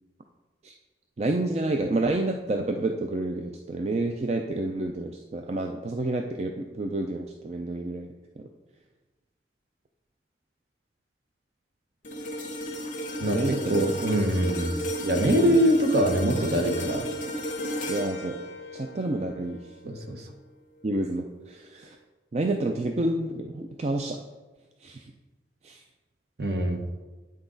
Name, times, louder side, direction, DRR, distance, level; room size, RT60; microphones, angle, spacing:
voice 1, 1.2-8.1 8.4-8.5 13.3-13.8 15.4-15.6 17.9-18.4 18.7-19.6 20.8-22.0 22.3-24.2 24.8-25.0 25.6-25.8, right 2 dB, 35° right, 3 dB, 0.4 m, -29 dB
sound 1, 12.0-20.4 20.8-21.0, equal, 45° left, 1.1 m, -34 dB
voice 2, 13.2-14.8 15.0-17.1 19.8-20.3 26.4-26.8, equal, 60° right, 4 dB, 1.0 m, -24 dB
8.8 x 6.0 x 3.9 m, 1.2 s
head